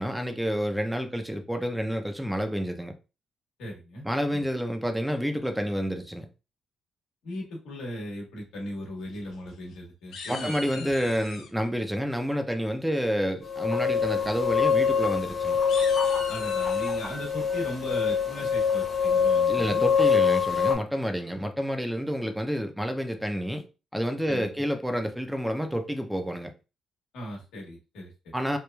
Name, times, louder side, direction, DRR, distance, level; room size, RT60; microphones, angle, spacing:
voice 1, 0.0-2.9 4.0-6.3 10.3-15.6 19.5-23.6 23.9-26.5 28.3-28.6, equal, 5° right, 0.4 m, -29 dB
voice 2, 3.6-4.0 7.2-10.9 16.3-19.8 24.3-24.4 27.1-28.3, left 1 dB, 90° left, 1.0 m, -37 dB
sound 1, 9.1-9.8 10.1-11.5 12.9-13.3 13.8-14.0 14.3-14.4 14.8-14.9 15.5-17.1, left 4 dB, 75° left, 0.5 m, -41 dB
sound 2, 13.4-20.8, left 6 dB, 25° left, 0.8 m, -24 dB
3.0 x 2.2 x 2.2 m
cardioid pair, 90°, 0 cm